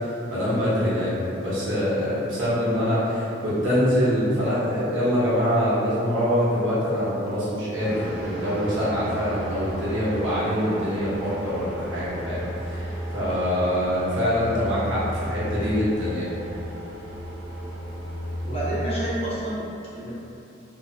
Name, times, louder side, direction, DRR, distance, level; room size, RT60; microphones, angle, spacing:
voice 1, 0.0-16.3, equal, 85° right, -10 dB, 0.9 m, -24 dB
sound 1, 7.8-19.4, equal, 60° right, 0.4 m, -33 dB
voice 2, 18.5-20.2, right 1 dB, 30° left, -10 dB, 0.7 m, -29 dB
2.9 x 2.0 x 2.6 m, 2.7 s
head